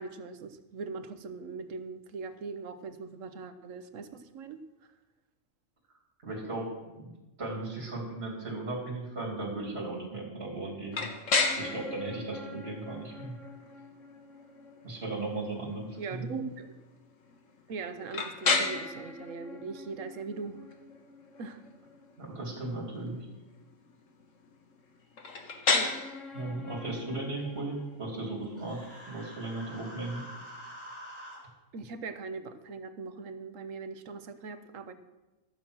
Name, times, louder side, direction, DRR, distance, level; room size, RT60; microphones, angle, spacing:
voice 1, 0.0-4.6 16.0-16.7 17.7-20.6 21.4-21.6 25.7-26.0 31.7-34.9, right 4 dB, 80° right, 10 dB, 1.2 m, -40 dB
voice 2, 6.2-7.1 7.4-11.1 11.6-13.3 14.8-16.3 22.2-23.2 26.3-28.8 29.1-30.3, right 2 dB, 50° right, -2 dB, 3.2 m, -36 dB
sound 1, 10.9-30.7, left 4 dB, 75° left, 1.6 m, -35 dB
Human voice, 28.6-31.4, equal, 10° left, 3.4 m, -46 dB
13.5 x 7.2 x 6.2 m, 1.1 s
omnidirectional pair, 1.3 m